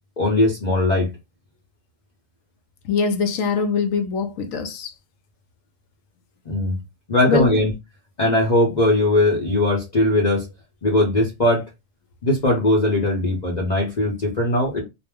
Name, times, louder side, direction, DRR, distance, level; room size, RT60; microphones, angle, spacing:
voice 1, 0.2-1.1 6.5-6.8 7.1-7.7 8.2-10.5 10.8-11.6 12.2-14.8, left 1 dB, 40° left, 0.8 m, -19 dB
voice 2, 2.9-4.9 7.3-7.5, left 5 dB, 75° left, 1.0 m, -23 dB
2.6 x 2.0 x 3.5 m
omnidirectional pair, 1.4 m